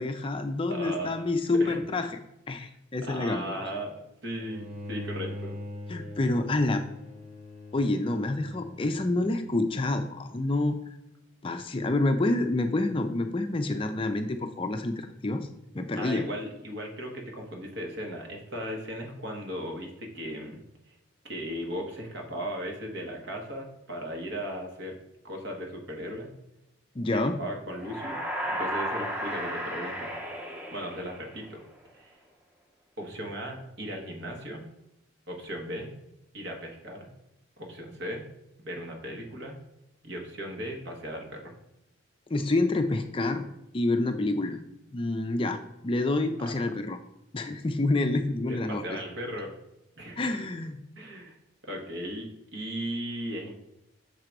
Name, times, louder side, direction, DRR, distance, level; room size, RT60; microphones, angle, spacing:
voice 1, 0.0-2.1 2.5-3.6 5.9-6.8 7.7-10.8 11.4-15.5 15.7-16.2 27.0-27.4 42.3-43.4 43.7-44.6 44.9-47.0 47.3-48.8 50.2-50.8, left 2 dB, 25° left, 7 dB, 0.4 m, -28 dB
voice 2, 0.7-1.2 1.5-1.8 3.0-5.6 15.9-20.9 21.2-25.0 25.2-26.3 27.3-28.2 28.5-31.6 31.9-32.2 33.0-34.6 35.3-35.9 36.3-37.1 37.6-38.3 38.6-39.6 40.0-41.6 46.4-46.6 48.5-49.5 50.0-50.2 51.0-51.4 51.6-53.5, equal, 60° right, 1 dB, 1.4 m, -37 dB
Bowed string instrument, 4.4-9.6, left 1 dB, 30° right, 1.2 m, -42 dB
sound 1, 27.8-31.6, equal, 10° right, 0.7 m, -34 dB
6.7 x 3.8 x 4.6 m, 0.87 s
head